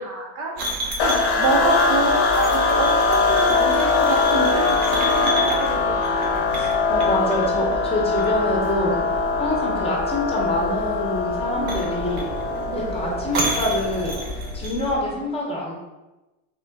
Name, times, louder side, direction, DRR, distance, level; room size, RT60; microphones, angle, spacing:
voice 1, 0.0-6.3 11.6-11.7 12.7-13.1, right 4 dB, 50° right, 0 dB, 0.9 m, -28 dB
sound 1, 0.6-15.0, equal, 70° right, 1.2 m, -31 dB
sound 2, 1.0-14.4, left 4 dB, 55° left, 0.7 m, -22 dB
voice 2, 6.5-9.0 9.4-12.3 12.7-15.7, left 1 dB, 15° left, -3 dB, 0.9 m, -26 dB
3.8 x 3.5 x 3.5 m, 1.1 s
supercardioid pair, 140°, 35 cm